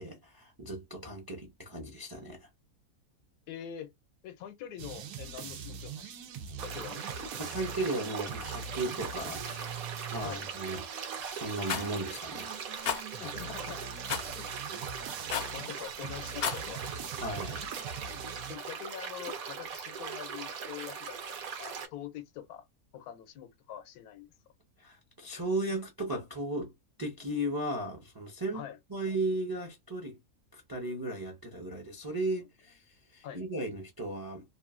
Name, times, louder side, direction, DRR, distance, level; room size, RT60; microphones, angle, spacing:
voice 1, 0.0-2.5 7.4-9.8 10.1-12.5 17.2-17.6 24.8-26.7 27.0-28.6 28.9-30.2 30.5-32.8 33.1-34.4, right 1 dB, 25° right, 0.4 m, -36 dB
voice 2, 3.5-3.9 4.2-6.1 6.6-7.0 10.2-10.4 13.2-14.5 15.3-16.9 18.5-22.7 22.9-24.3 28.5-28.8 33.2-33.4, left 10 dB, 80° left, 1.1 m, -44 dB
sound 1, 4.8-18.5, right 6 dB, 90° right, 1.2 m, -43 dB
sound 2, 6.6-21.9, right 6 dB, 70° right, 1.2 m, -40 dB
Rattle, 11.7-11.9 12.8-13.0 14.1-14.3 15.3-15.6 16.3-16.6, left 7 dB, 60° left, 0.6 m, -32 dB
3.0 x 2.5 x 2.4 m
omnidirectional pair, 1.6 m